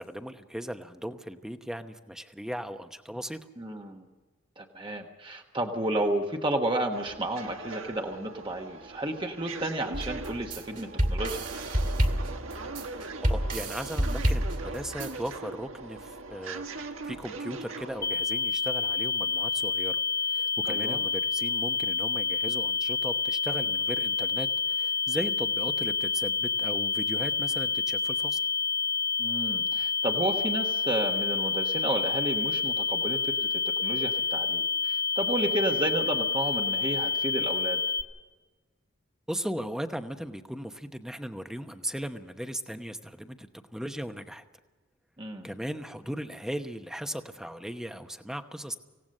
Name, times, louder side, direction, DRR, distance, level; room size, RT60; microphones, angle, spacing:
voice 1, 0.0-3.4 13.3-16.6 17.0-20.0 20.3-28.4 39.3-44.4 45.4-48.8, equal, 5° right, 7 dB, 1.0 m, -37 dB
voice 2, 3.6-4.1 4.6-11.4 20.6-21.0 29.2-37.8 45.2-45.5, right 1 dB, 25° right, 3 dB, 1.3 m, -32 dB
sound 1, 6.9-18.1, right 3 dB, 85° right, 1.5 m, -40 dB
sound 2, 9.9-15.3, equal, 40° right, 2.2 m, -29 dB
sound 3, 18.0-38.0, left 5 dB, 15° left, 1.3 m, -28 dB
26.0 x 17.0 x 6.6 m, 1.3 s
head